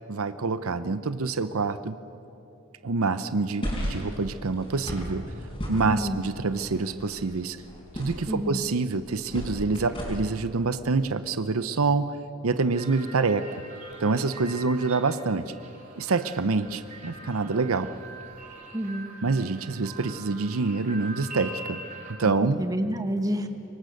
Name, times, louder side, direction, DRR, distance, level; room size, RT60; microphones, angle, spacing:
voice 1, 0.1-2.0 2.8-5.2 5.7-7.6 7.9-12.1 12.4-13.6 14.0-15.5 16.0-17.9 19.2-21.8 22.2-22.6, right 3 dB, 85° right, 12 dB, 0.8 m, -26 dB
sound 1, 3.6-10.4, equal, 25° left, 6.0 m, -36 dB
voice 2, 5.9-6.2 8.3-8.6 18.7-19.2 22.2-23.5, equal, 15° right, 7 dB, 1.2 m, -29 dB
sound 2, 12.7-22.1, right 3 dB, 35° right, 3.0 m, -43 dB
26.0 x 23.5 x 6.6 m, 2.9 s
head